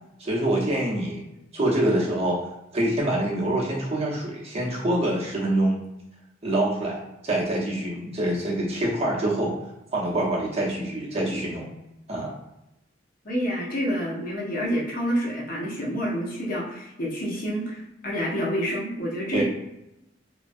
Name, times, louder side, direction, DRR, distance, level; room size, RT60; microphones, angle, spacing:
voice 1, 0.2-1.2 1.5-2.4 2.7-5.8 6.4-9.5 9.9-11.7 12.1-12.3 19.3-19.4, right 1 dB, 35° right, -4 dB, 0.8 m, -25 dB
voice 2, 13.2-19.4, equal, 50° left, -3 dB, 0.7 m, -28 dB
3.1 x 2.2 x 2.5 m, 0.90 s
head